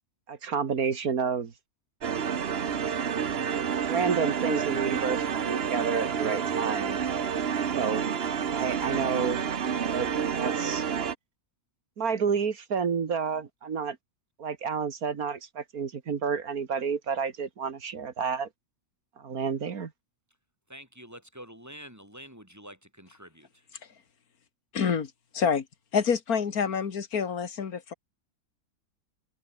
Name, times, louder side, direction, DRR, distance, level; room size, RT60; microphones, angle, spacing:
voice 1, 0.3-1.5 3.9-7.0 7.7-8.1 8.5-9.4 9.9-10.1 10.3-10.9 12.0-14.0 14.4-18.5 19.2-19.9, right 6 dB, 75° right, 2.1 m, -30 dB
sound 1, 2.0-11.2, right 7 dB, 45° right, 1.1 m, -29 dB
voice 2, 20.7-23.7, equal, 10° right, 7.5 m, -47 dB
voice 3, 24.7-25.6 25.9-27.9, left 6 dB, 80° left, 2.1 m, -27 dB
omnidirectional pair, 1.6 m